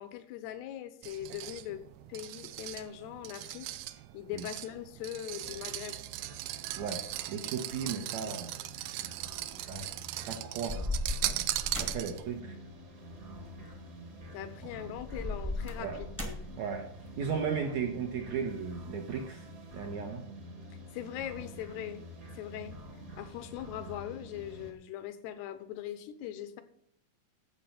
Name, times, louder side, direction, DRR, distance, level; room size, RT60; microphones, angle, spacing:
voice 1, 0.0-1.8 2.1-3.7 4.1-6.0 14.3-16.4 20.9-22.1 22.3-22.8 23.2-26.6, left 11 dB, 85° left, 11 dB, 3.0 m, -41 dB
sound 1, 1.0-12.4, right 15 dB, 80° right, 2.1 m, -39 dB
sound 2, 5.4-24.7, right 1 dB, 35° right, 1.4 m, -48 dB
voice 2, 6.8-9.2 9.7-9.9 10.3-10.9 11.2-11.5 11.8-12.6 15.8-16.0 16.6-16.9 17.2-20.2, right 6 dB, 65° right, 3 dB, 1.9 m, -36 dB
sound 3, 9.5-10.0 10.7-12.2 13.4-13.6 14.9-16.6, left 2 dB, 5° right, 1.0 m, -36 dB
11.5 x 7.8 x 5.9 m, 0.68 s
omnidirectional pair, 4.7 m